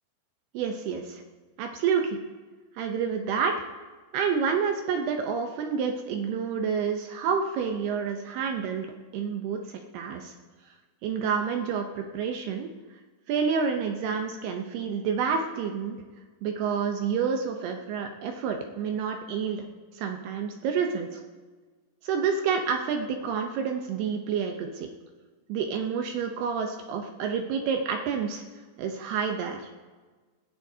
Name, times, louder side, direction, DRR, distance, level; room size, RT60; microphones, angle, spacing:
voice 1, 0.5-1.2 1.6-2.2 2.8-3.5 4.1-8.9 9.1-10.3 11.0-12.7 13.3-16.0 16.4-19.6 20.0-21.2 22.0-24.9 25.5-28.4 28.8-29.7, right 6 dB, 75° right, 4 dB, 2.5 m, -29 dB
17.0 x 16.0 x 2.8 m, 1.3 s
omnidirectional pair, 5.2 m